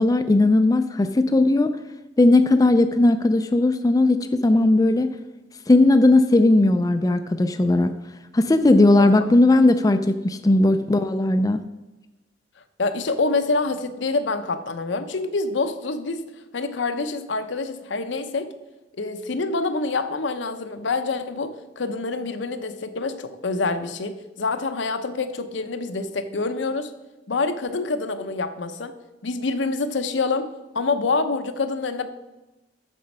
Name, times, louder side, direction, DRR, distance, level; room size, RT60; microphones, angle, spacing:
voice 1, 0.0-1.7 2.2-5.1 5.7-8.0 8.3-11.6, left 2 dB, 20° left, 8 dB, 0.3 m, -17 dB
voice 2, 12.8-16.2 16.5-18.5 18.9-26.9 27.3-28.9 29.2-30.5 30.7-32.1, left 3 dB, 80° left, 9 dB, 0.8 m, -26 dB
7.4 x 7.0 x 5.3 m, 1.1 s
head